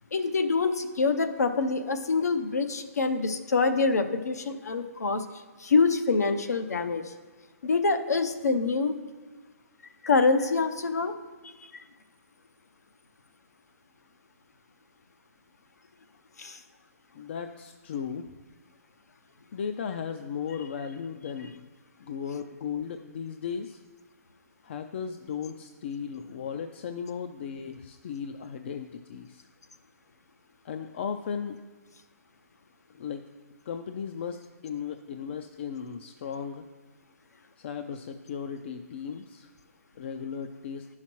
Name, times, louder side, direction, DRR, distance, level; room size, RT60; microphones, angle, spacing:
voice 1, 0.1-5.2 5.6-7.1 7.6-8.9 10.0-11.1 11.4-11.8 16.4-16.6, left 4 dB, 80° left, 8 dB, 0.7 m, -26 dB
voice 2, 17.1-18.3 19.5-21.7 22.0-23.8 24.6-29.5 30.6-31.6 32.9-33.2 33.7-36.6 37.6-39.5 40.0-40.9, left 7 dB, 45° left, 7 dB, 0.4 m, -36 dB
11.0 x 5.7 x 3.0 m, 1.3 s
hypercardioid pair, 145°, 9 cm